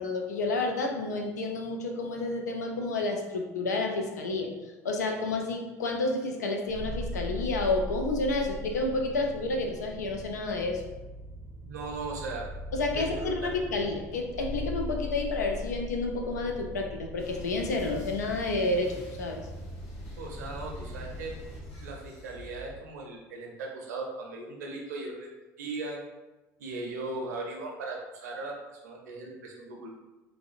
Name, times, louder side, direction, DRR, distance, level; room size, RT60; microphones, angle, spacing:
voice 1, 0.0-4.5 4.8-10.8 12.7-19.4, left 2 dB, 85° left, 3 dB, 0.3 m, -30 dB
sound 1, 6.7-21.9, left 1 dB, 40° left, 0.9 m, -40 dB
voice 2, 11.6-12.5 12.9-13.5 20.2-21.4 21.8-25.3 25.6-26.0 26.6-30.0, right 3 dB, 80° right, 0 dB, 0.5 m, -38 dB
sound 2, 17.2-22.7, left 2 dB, 65° left, 1.0 m, -46 dB
2.6 x 2.1 x 2.4 m, 1.1 s
hypercardioid pair, 65°, 9 cm